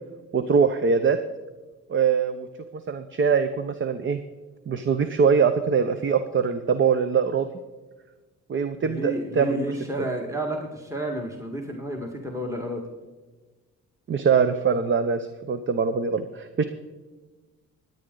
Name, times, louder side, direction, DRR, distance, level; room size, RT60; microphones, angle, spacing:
voice 1, 0.3-1.2 1.9-2.5 2.7-4.2 4.7-7.5 8.5-9.6 14.1-16.6, right 6 dB, 40° right, 10 dB, 0.8 m, -23 dB
voice 2, 8.8-12.8, right 1 dB, 10° right, 1 dB, 1.9 m, -31 dB
20.5 x 9.1 x 3.9 m, 1.3 s
cardioid pair, 90°, 30 cm